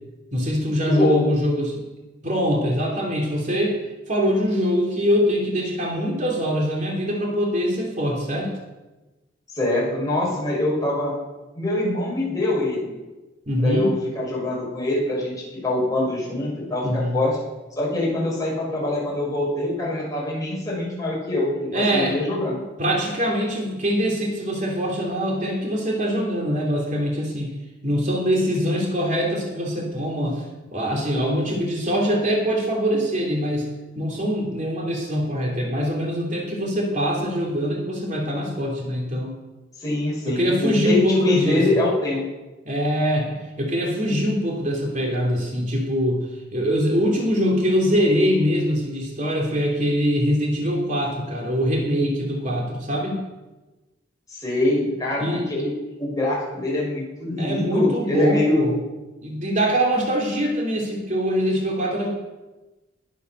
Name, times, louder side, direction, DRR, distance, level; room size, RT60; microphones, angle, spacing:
voice 1, 0.3-1.7 2.2-3.8 4.1-8.6 13.5-13.9 16.8-17.2 21.7-22.2 22.8-27.5 27.8-30.4 30.7-39.4 40.2-41.6 42.7-46.2 46.5-53.2 55.2-55.5 57.4-58.7 59.2-62.1, equal, 40° right, -1 dB, 2.9 m, -23 dB
voice 2, 0.8-1.2 9.5-11.1 11.6-12.9 13.6-15.3 15.6-17.4 17.8-22.6 39.8-42.2 54.3-55.7 56.0-58.7, left 1 dB, 20° left, -4 dB, 5.9 m, -24 dB
20.5 x 8.3 x 6.6 m, 1.1 s
head